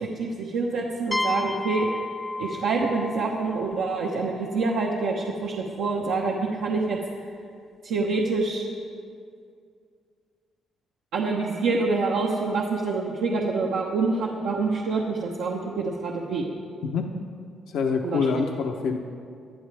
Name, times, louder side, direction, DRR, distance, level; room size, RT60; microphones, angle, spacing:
voice 1, 0.0-1.9 2.4-7.0 7.8-8.6 11.1-16.5 18.0-18.4, right 3 dB, 90° right, -3 dB, 1.1 m, -26 dB
sound 1, 1.1-4.7, left 2 dB, 15° left, 0.4 m, -33 dB
voice 2, 17.7-19.0, left 5 dB, 80° left, 3 dB, 0.9 m, -25 dB
19.5 x 11.5 x 3.5 m, 2.3 s
cardioid pair, 90°, 0 cm